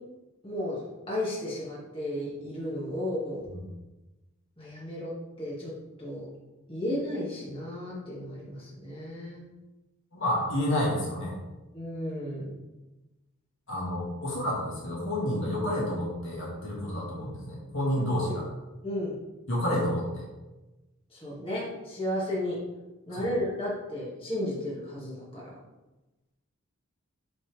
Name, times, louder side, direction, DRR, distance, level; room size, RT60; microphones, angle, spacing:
voice 1, 0.4-3.5 4.6-6.3 6.7-9.4 11.7-12.5 18.1-18.4 18.8-19.2 21.1-22.6 23.1-25.6, left 1 dB, 25° left, -7 dB, 1.9 m, -34 dB
voice 2, 10.1-11.3 13.7-18.4 19.5-20.3 23.1-23.3, left 1 dB, 65° left, -4 dB, 1.8 m, -29 dB
7.9 x 4.2 x 3.4 m, 1.1 s
head